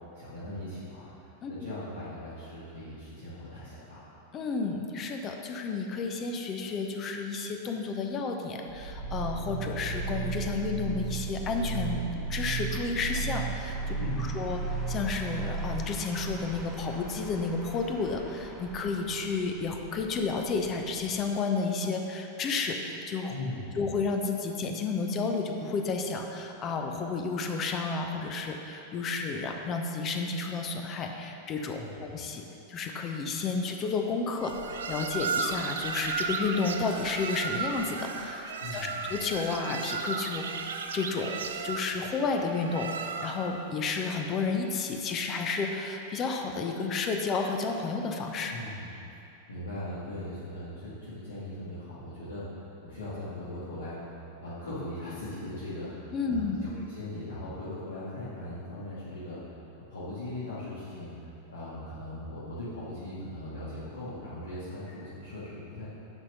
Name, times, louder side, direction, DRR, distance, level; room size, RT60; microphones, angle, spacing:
voice 1, 0.1-1.1 1.5-4.0 14.0-14.5 23.3-23.8 31.7-32.0 38.6-39.0 48.5-48.9 49.5-59.4 59.9-61.1 61.5-65.9, left 1 dB, 75° left, -13 dB, 2.1 m, -39 dB
voice 2, 4.3-12.0 12.3-23.3 23.7-48.5 56.1-56.6, left 4 dB, 30° left, 4 dB, 0.7 m, -31 dB
sound 1, 8.7-16.5, right 4 dB, 90° right, 1.0 m, -34 dB
sound 2, 8.8-21.4, right 1 dB, 5° left, 1.1 m, -48 dB
sound 3, 34.4-43.6, right 5 dB, 65° right, 0.5 m, -35 dB
10.5 x 4.3 x 5.4 m, 2.8 s
figure-of-eight pair, 90°, 0 cm